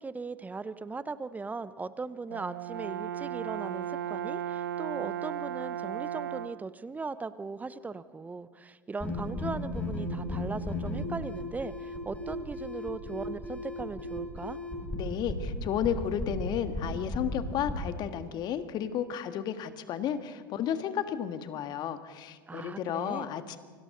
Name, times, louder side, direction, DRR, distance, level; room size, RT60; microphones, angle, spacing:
voice 1, 0.0-14.6 22.5-23.3, right 4 dB, 15° right, 15 dB, 0.8 m, -38 dB
Brass instrument, 2.3-6.7, right 10 dB, 70° right, 0.6 m, -35 dB
sound 1, 9.0-18.0, left 1 dB, 15° left, 7.6 m, -35 dB
voice 2, 14.9-23.6, left 9 dB, 40° left, 9 dB, 1.6 m, -33 dB
29.0 x 24.5 x 3.9 m, 1.5 s
figure-of-eight pair, 80°, 11 cm